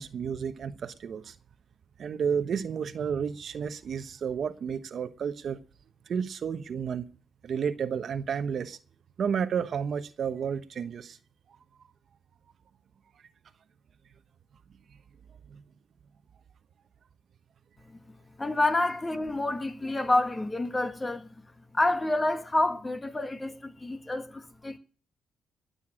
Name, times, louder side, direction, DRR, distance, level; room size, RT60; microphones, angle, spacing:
voice 1, 0.0-1.3 2.0-5.6 6.1-7.1 7.4-8.8 9.2-11.2 15.5-15.6, right 7 dB, 55° right, 1.1 m, -31 dB
voice 2, 18.4-21.3 21.7-24.8, left 2 dB, 20° left, 1.6 m, -28 dB
20.0 x 7.0 x 8.9 m
cardioid pair, 90°, 0 cm